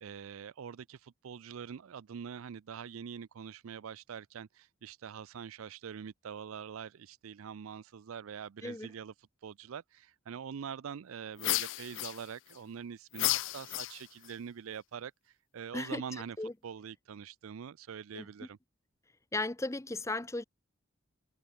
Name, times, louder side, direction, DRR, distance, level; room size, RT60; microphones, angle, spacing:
voice 1, 0.0-9.1 9.4-15.1 15.5-16.4 16.6-18.6, right 7 dB, 90° right, 0.4 m, -44 dB
sound 1, 11.4-12.6 13.1-14.3, left 17 dB, 65° left, 0.3 m, -33 dB
voice 2, 19.3-20.4, left 2 dB, 15° left, 0.6 m, -35 dB
head